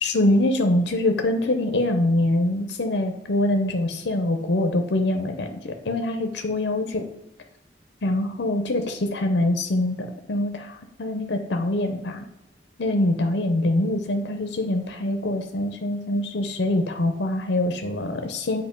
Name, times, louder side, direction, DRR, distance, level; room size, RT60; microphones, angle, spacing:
voice 1, 0.0-7.0 8.0-12.2 12.8-18.6, left 1 dB, 70° left, 6 dB, 0.6 m, -24 dB
7.6 x 2.7 x 5.2 m, 0.91 s
head